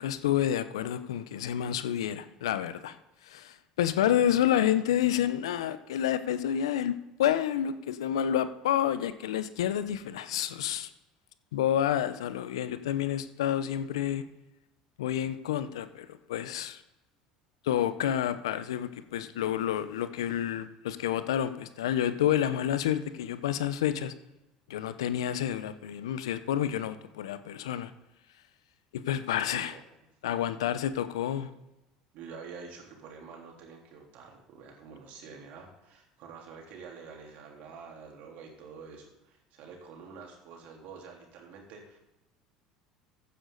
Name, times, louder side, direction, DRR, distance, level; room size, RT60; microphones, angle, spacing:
voice 1, 0.0-3.0 3.2-6.9 7.2-10.9 11.5-14.2 15.0-16.8 17.6-24.1 24.7-27.9 28.9-29.8 30.2-31.5, left 10 dB, 80° left, 13 dB, 0.8 m, -29 dB
voice 2, 29.5-29.8 32.1-42.0, right 5 dB, 60° right, 0 dB, 3.7 m, -47 dB
15.0 x 9.8 x 4.1 m, 0.95 s
hypercardioid pair, 75°, 3 cm